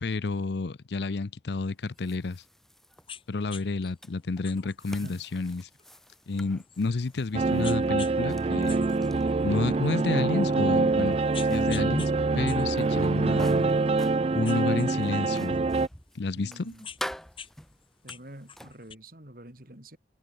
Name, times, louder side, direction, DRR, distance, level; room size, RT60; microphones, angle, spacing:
voice 1, 0.0-2.4 3.3-5.7 6.3-8.8 9.4-11.2 11.5-13.7 14.3-15.6 16.1-16.7, left 3 dB, 75° left, 0.6 m, -30 dB
sound 1, 1.5-18.7, equal, ahead, 1.6 m, -47 dB
sound 2, 3.1-3.2 3.5-3.7 4.4-7.1 7.6-8.2 8.5-9.9 10.4-10.5 11.1-12.1 12.5-14.0 14.4-15.8 16.4-17.5 17.8-18.9, left 7 dB, 30° left, 5.9 m, -45 dB
sound 3, 7.3-15.9, right 3 dB, 35° right, 0.4 m, -25 dB
voice 2, 16.3-16.8 18.0-20.0, right 1 dB, 50° right, 3.4 m, -47 dB
head